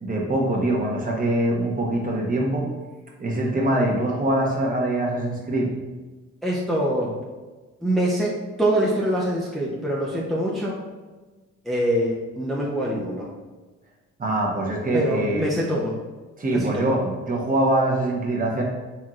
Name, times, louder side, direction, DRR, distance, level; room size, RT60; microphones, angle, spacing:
voice 1, 0.0-2.7 3.2-5.7 14.2-15.5 16.4-18.6, right 1 dB, 30° right, -2 dB, 1.0 m, -23 dB
voice 2, 6.4-7.1 7.8-10.8 11.7-13.3 14.9-16.0 16.6-16.9, right 1 dB, ahead, -5 dB, 0.7 m, -24 dB
4.3 x 3.6 x 2.4 m, 1.3 s
cardioid pair, 90°, 30 cm